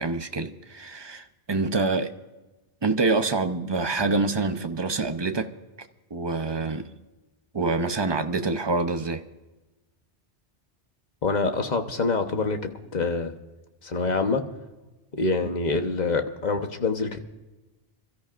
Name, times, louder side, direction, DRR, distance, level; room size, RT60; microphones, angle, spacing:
voice 1, 0.0-2.1 2.8-5.5 6.1-6.9 7.5-9.2 15.4-15.5, right 3 dB, 25° right, 0.7 m, -26 dB
voice 2, 11.2-13.3 13.8-14.4 15.1-17.2, left 3 dB, 40° left, 1.2 m, -26 dB
27.0 x 13.5 x 2.5 m
omnidirectional pair, 1.2 m